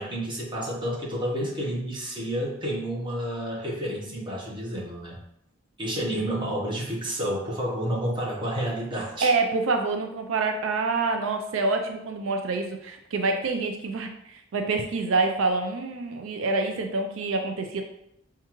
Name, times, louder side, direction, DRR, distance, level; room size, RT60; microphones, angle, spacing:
voice 1, 0.0-5.2 5.8-9.3, equal, 25° right, -4 dB, 1.0 m, -30 dB
voice 2, 9.2-17.8, right 3 dB, 85° right, 4 dB, 0.4 m, -26 dB
5.6 x 2.4 x 2.9 m, 0.78 s
head